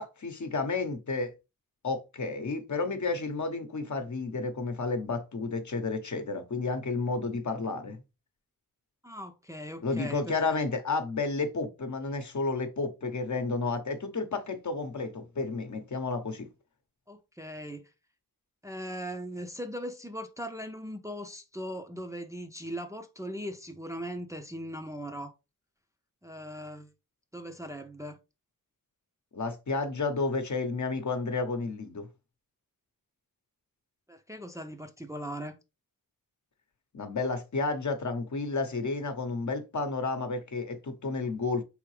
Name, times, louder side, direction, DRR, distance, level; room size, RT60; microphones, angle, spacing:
voice 1, 0.0-1.3 1.8-8.0 9.8-16.5 29.3-32.1 36.9-41.6, left 3 dB, 55° left, 0.9 m, -31 dB
voice 2, 9.0-10.6 17.1-17.8 18.6-25.3 26.2-26.9 27.3-28.2 34.1-35.6, equal, 10° right, 0.5 m, -39 dB
4.5 x 3.5 x 3.2 m
wide cardioid pair, 80°, 35 cm